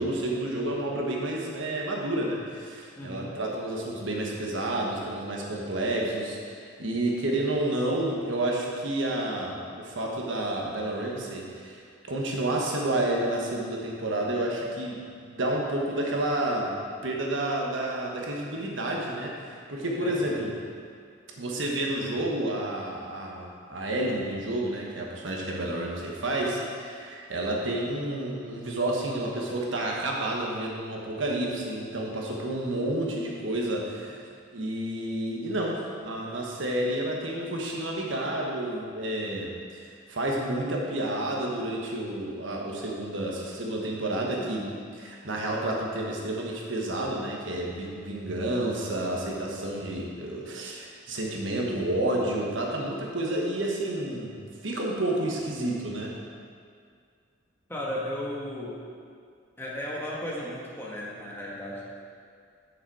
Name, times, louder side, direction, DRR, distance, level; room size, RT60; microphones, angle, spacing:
voice 1, 0.0-6.5 6.8-16.8 17.0-20.5 21.4-34.2 34.5-56.2, right 1 dB, 75° right, -1 dB, 1.3 m, -30 dB
voice 2, 3.0-3.3 20.0-20.3 57.7-58.8 59.6-61.8, left 1 dB, 10° left, -6 dB, 1.4 m, -35 dB
7.2 x 6.7 x 4.8 m, 2.2 s
head